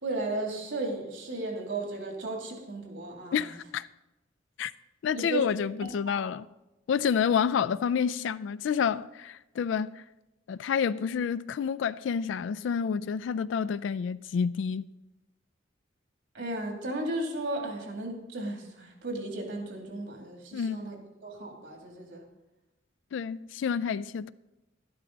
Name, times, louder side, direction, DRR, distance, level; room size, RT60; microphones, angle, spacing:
voice 1, 0.0-3.3 5.1-5.5 6.1-6.2 16.3-20.9 21.2-22.2, right 2 dB, 70° right, 2.7 m, -34 dB
voice 2, 3.3-3.9 4.6-4.7 5.0-6.5 6.9-10.0 10.5-14.9 20.5-20.9 23.1-24.3, left 7 dB, 75° left, 0.3 m, -29 dB
12.0 x 11.5 x 4.0 m
head